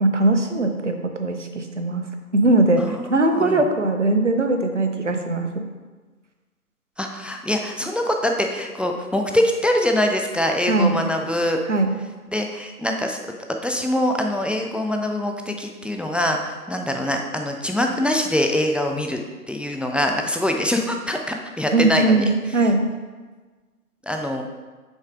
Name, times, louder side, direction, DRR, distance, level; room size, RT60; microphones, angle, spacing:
voice 1, 0.0-2.0 2.3-5.6 10.7-10.9 11.7-11.9 21.7-22.8, right 2 dB, 50° right, 5 dB, 0.7 m, -20 dB
voice 2, 2.8-3.6 7.0-11.6 12.3-13.2 13.6-19.2 19.5-22.2 24.0-24.4, left 1 dB, 5° right, 3 dB, 0.3 m, -24 dB
6.4 x 3.6 x 4.9 m, 1.3 s
figure-of-eight pair, 160°, 46 cm